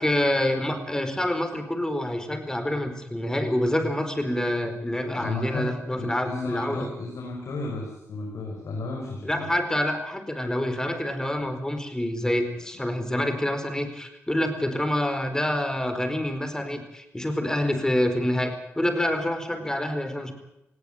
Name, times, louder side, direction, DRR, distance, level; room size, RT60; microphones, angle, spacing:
voice 1, 0.0-6.9 9.2-20.3, left 1 dB, 10° left, 9 dB, 4.6 m, -27 dB
voice 2, 5.1-5.7 6.0-9.5, left 2 dB, 75° left, 0 dB, 5.9 m, -33 dB
19.0 x 17.5 x 9.1 m, 0.82 s
cardioid pair, 70°, 5 cm